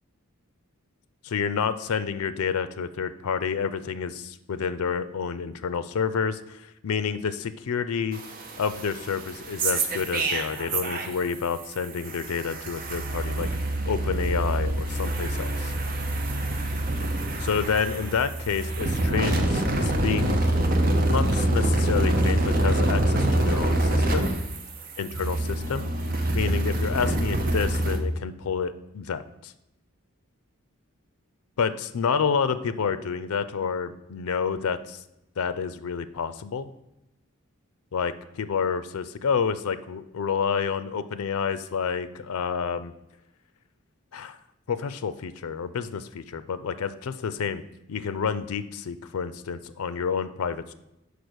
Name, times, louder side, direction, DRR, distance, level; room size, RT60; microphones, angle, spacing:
voice 1, 1.2-8.2 8.6-13.5 13.9-15.7 17.4-20.4 20.7-24.3 25.0-25.9 26.3-29.5 31.6-35.0 35.4-36.7 37.9-42.9 44.1-44.4 44.7-47.6 47.9-50.7, left 6 dB, 85° left, 13 dB, 0.4 m, -29 dB
sound 1, 8.1-11.3 11.6-28.0, right 1 dB, 40° right, 0.7 m, -26 dB
5.1 x 4.8 x 6.1 m, 0.89 s
head